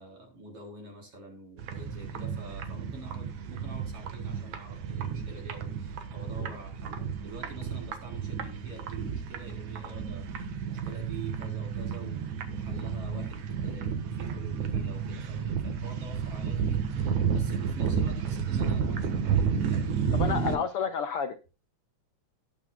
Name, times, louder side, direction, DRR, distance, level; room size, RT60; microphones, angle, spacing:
voice 1, 0.0-20.7, right 2 dB, 50° right, 1 dB, 4.6 m, -47 dB
sound 1, 1.6-20.6, right 6 dB, 80° right, 2.7 m, -31 dB
voice 2, 20.1-21.4, left 7 dB, 70° left, 7 dB, 1.4 m, -30 dB
18.0 x 7.4 x 2.2 m, 0.31 s
omnidirectional pair, 3.3 m